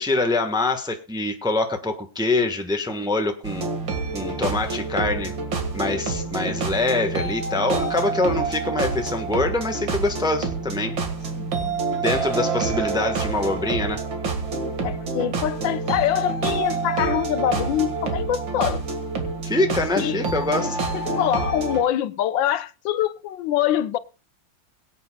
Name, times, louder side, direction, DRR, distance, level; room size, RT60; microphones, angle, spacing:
voice 1, 0.0-3.7 4.1-5.3 5.7-11.0 12.0-14.0 19.4-20.8, left 2 dB, 5° right, 1.0 m, -24 dB
sound 1, 3.4-21.8, right 4 dB, 85° right, 2.6 m, -27 dB
voice 2, 11.4-11.8 12.3-12.4 14.8-18.8 20.0-20.2 20.9-24.0, left 11 dB, 90° left, 1.5 m, -24 dB
23.0 x 8.3 x 2.3 m
omnidirectional pair, 2.0 m